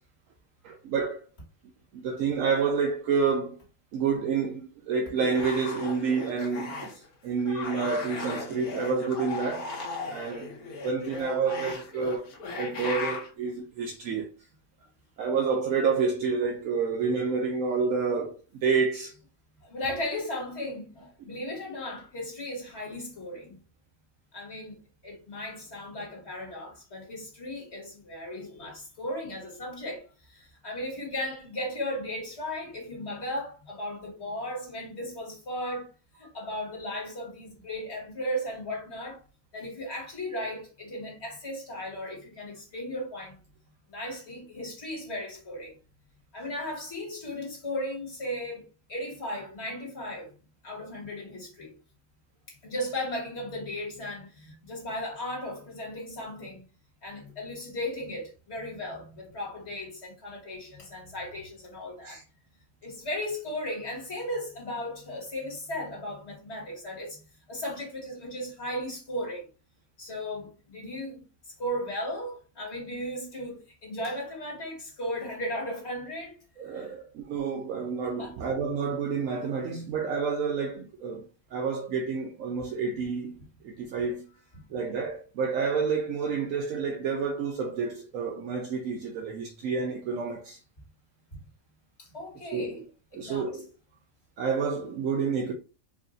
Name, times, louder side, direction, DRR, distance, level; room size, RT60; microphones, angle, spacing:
voice 1, 0.6-1.2 1.9-3.6 3.9-9.7 10.1-10.5 10.8-12.3 12.6-14.3 15.2-19.1 62.0-62.2 76.6-81.2 81.5-84.3 84.7-90.6 92.5-92.8 93.1-93.7 94.4-95.5, right 5 dB, 75° right, 0.9 m, -29 dB
sound 1, 5.1-7.1 7.4-13.3, left 3 dB, 90° left, 1.4 m, -37 dB
voice 2, 19.6-23.6 24.3-24.8 25.0-35.9 36.2-39.2 39.5-43.4 43.9-45.7 46.3-50.3 50.6-51.8 52.5-56.6 57.0-62.2 62.8-67.2 67.5-69.5 70.0-76.4 76.7-76.9 78.2-78.3 91.3-91.4 92.0-92.8 93.1-93.5, left 1 dB, 50° left, 2.0 m, -36 dB
4.7 x 2.5 x 2.6 m
omnidirectional pair, 1.5 m